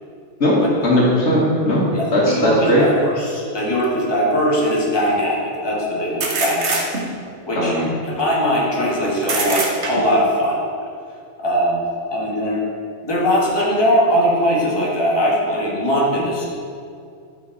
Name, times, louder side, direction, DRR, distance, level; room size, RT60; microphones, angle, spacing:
voice 1, 0.4-2.9 7.5-8.0, equal, 65° left, -5 dB, 1.8 m, -18 dB
voice 2, 1.9-6.9 7.5-7.7 8.0-10.6 11.4-11.8 12.1-12.6 13.0-16.4, equal, 20° left, -6 dB, 1.6 m, -20 dB
sound 1, 3.8-3.9 6.2-7.3 9.2-10.3, right 3 dB, 70° right, 1.2 m, -24 dB
11.0 x 5.0 x 3.9 m, 2.4 s
omnidirectional pair, 1.3 m